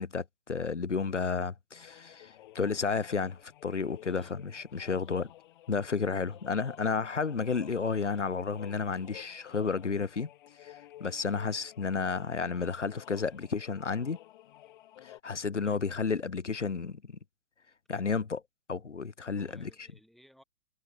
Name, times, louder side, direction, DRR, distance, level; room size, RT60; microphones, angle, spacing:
voice 1, 0.0-5.3 5.7-10.3 10.6-14.2 15.0-17.2 17.9-18.4 18.7-19.7, left 5 dB, 85° left, 0.7 m, -32 dB
sound 1, 1.7-15.2, left 14 dB, 45° left, 3.4 m, -53 dB
voice 2, 4.1-4.4 6.0-6.4 15.6-15.9 19.4-20.4, equal, ahead, 4.1 m, -60 dB
figure-of-eight pair, 115°, 35 cm